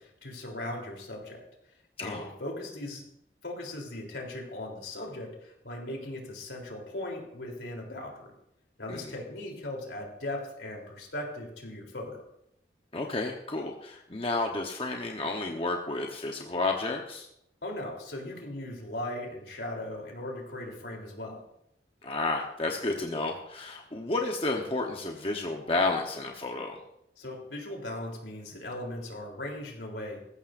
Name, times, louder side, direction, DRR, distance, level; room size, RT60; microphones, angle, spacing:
voice 1, 0.0-1.4 2.0-3.0 3.4-8.3 8.8-12.2 17.6-21.4 27.2-30.2, left 1 dB, 80° left, 0 dB, 3.5 m, -38 dB
voice 2, 2.0-2.3 8.9-9.0 12.9-17.3 22.0-26.8, left 2 dB, 30° left, 2 dB, 1.0 m, -31 dB
19.0 x 15.0 x 2.6 m, 0.79 s
head